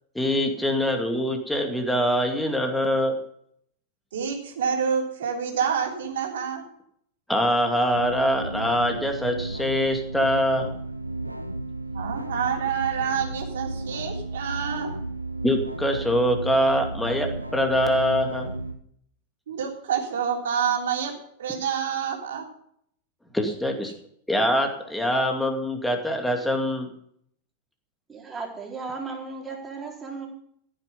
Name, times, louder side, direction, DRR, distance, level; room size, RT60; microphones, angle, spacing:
voice 1, 0.1-3.2 7.3-10.8 15.4-18.5 23.3-23.9 24.3-26.9, equal, 5° left, 4 dB, 2.5 m, -24 dB
voice 2, 4.1-6.6 11.9-14.9 19.5-21.1 21.4-22.5, right 7 dB, 60° right, 1 dB, 3.4 m, -27 dB
sound 1, 7.9-18.7, right 2 dB, 85° right, 0.9 m, -33 dB
voice 3, 28.1-30.3, right 4 dB, 15° right, -1 dB, 4.2 m, -35 dB
15.0 x 9.9 x 5.4 m, 0.68 s
figure-of-eight pair, 90°, 0 cm